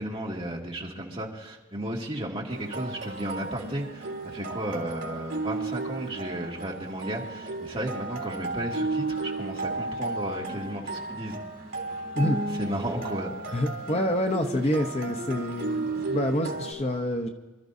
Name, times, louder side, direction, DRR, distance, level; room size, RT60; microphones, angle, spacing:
voice 1, 0.0-11.4 12.6-13.3, right 1 dB, 30° right, -2 dB, 2.1 m, -34 dB
sound 1, 2.5-16.7, right 3 dB, 65° right, 2.8 m, -34 dB
voice 2, 13.5-17.3, left 1 dB, 35° left, 4 dB, 0.8 m, -27 dB
26.5 x 13.5 x 2.7 m, 1.2 s
head